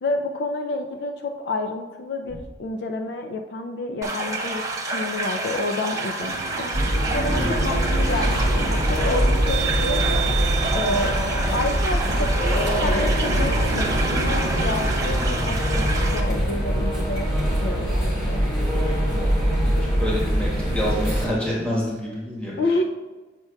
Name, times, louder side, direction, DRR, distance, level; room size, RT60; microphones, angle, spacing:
voice 1, 0.0-10.3 10.7-11.2 11.5-17.3 17.6-18.5 22.6-22.8, left 2 dB, 65° left, 5 dB, 0.4 m, -29 dB
sound 1, 4.0-16.2, right 2 dB, 20° right, 0.7 m, -29 dB
sound 2, 6.2-15.4, right 5 dB, 85° right, 0.4 m, -33 dB
sound 3, 6.7-21.3, equal, 25° left, 1.6 m, -23 dB
voice 2, 7.3-7.6 19.0-19.3 19.6-19.7 20.0-22.5, equal, 5° left, -6 dB, 1.1 m, -28 dB
8.1 x 5.6 x 2.2 m, 1.3 s
head